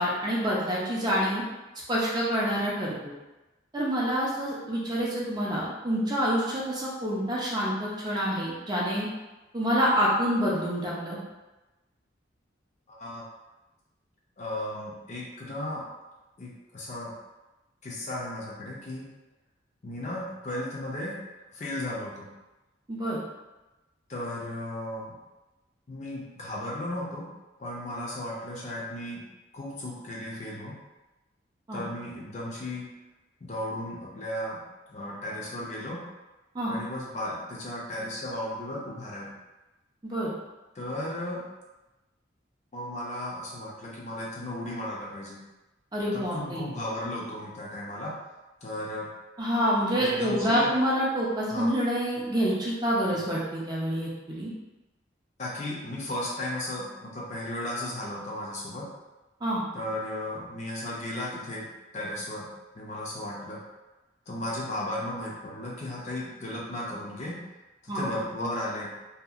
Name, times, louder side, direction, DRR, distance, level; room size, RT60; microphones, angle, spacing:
voice 1, 0.0-1.4 1.9-3.1 3.7-9.1 9.5-11.2 22.9-23.2 31.7-31.8 36.5-36.7 40.0-40.3 45.9-46.6 49.4-54.5 59.4-59.6 67.9-68.0, equal, 20° right, -5 dB, 0.4 m, -27 dB
voice 2, 12.9-13.3 14.4-15.8 16.4-17.1 17.8-19.1 19.8-21.2 21.5-22.3 24.1-25.2 25.9-27.3 27.6-29.2 29.5-30.8 31.7-32.9 33.4-34.6 34.9-36.0 36.7-39.3 40.7-41.4 42.7-45.4 46.1-48.2 48.6-49.1 50.0-50.7 51.5-51.7 53.1-53.2 55.4-58.9 59.7-61.7 61.9-62.5 62.7-63.6 64.3-67.4 67.8-68.9, left 1 dB, 35° left, -4 dB, 0.5 m, -35 dB
2.7 x 2.4 x 2.4 m, 1.1 s
head